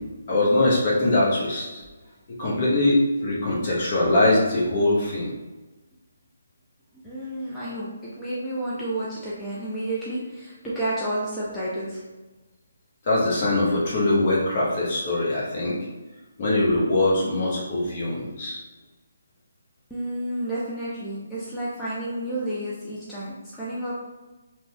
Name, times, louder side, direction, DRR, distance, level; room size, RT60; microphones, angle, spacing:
voice 1, 0.3-1.8 2.4-5.3 13.1-15.8 16.4-18.6, left 2 dB, 40° left, -5 dB, 0.9 m, -22 dB
voice 2, 7.0-12.0 19.9-23.9, right 1 dB, 10° left, -10 dB, 0.5 m, -31 dB
2.9 x 2.2 x 2.7 m, 1.2 s
figure-of-eight pair, 145°, 0 cm